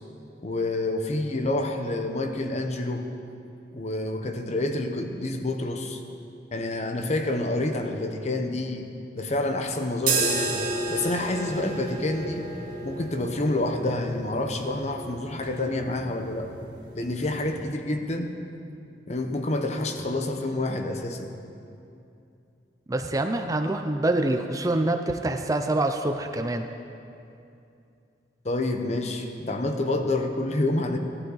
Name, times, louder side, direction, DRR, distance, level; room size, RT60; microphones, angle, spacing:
voice 1, 0.4-3.1 3.7-6.0 6.5-8.9 9.2-12.5 12.8-16.5 16.9-18.3 19.1-21.3 28.4-31.0, left 2 dB, 40° left, 5 dB, 0.9 m, -28 dB
sound 1, 10.0-17.8, right 3 dB, 50° right, 2.2 m, -32 dB
voice 2, 22.9-26.7, right 2 dB, 20° right, 6 dB, 0.5 m, -26 dB
17.0 x 11.5 x 4.0 m, 2.6 s
head